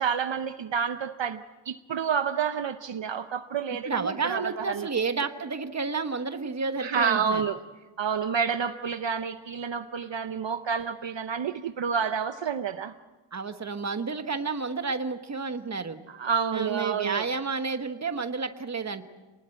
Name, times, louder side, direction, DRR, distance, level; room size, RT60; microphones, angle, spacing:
voice 1, 0.0-4.9 6.8-7.6 8.0-12.9 16.1-17.2, right 6 dB, 60° right, 10 dB, 0.8 m, -29 dB
voice 2, 3.8-7.4 13.3-16.0 16.5-19.0, right 4 dB, 35° right, 8 dB, 1.3 m, -30 dB
28.0 x 19.5 x 7.7 m, 1.2 s
wide cardioid pair, 160°, 50 cm